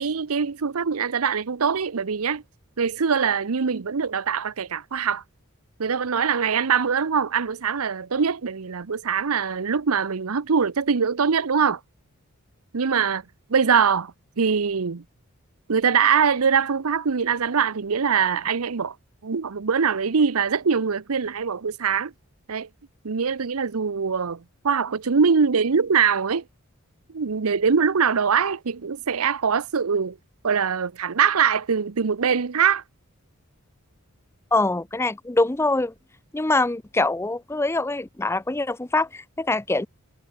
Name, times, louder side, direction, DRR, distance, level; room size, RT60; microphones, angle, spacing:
voice 1, 0.0-2.4 2.8-5.2 5.8-11.8 12.7-13.2 13.5-15.0 15.7-18.9 19.2-22.1 22.5-22.7 23.0-26.4 27.1-30.2 30.4-32.8, right 6 dB, 85° right, 0.7 m, -23 dB
voice 2, 34.5-35.9 36.3-39.9, left 2 dB, 10° left, 0.5 m, -24 dB
head